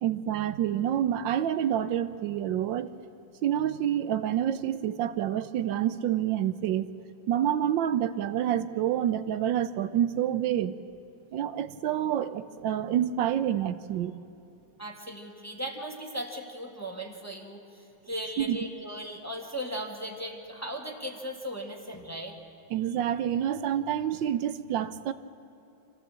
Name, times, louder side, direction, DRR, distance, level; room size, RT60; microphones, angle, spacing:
voice 1, 0.0-2.9 3.4-6.9 7.3-10.7 11.3-14.1 18.4-18.6 22.7-25.1, right 10 dB, 85° right, 12 dB, 1.4 m, -28 dB
voice 2, 14.8-22.4, equal, 10° left, 1 dB, 1.4 m, -37 dB
25.0 x 15.0 x 7.6 m, 2.8 s
omnidirectional pair, 2.0 m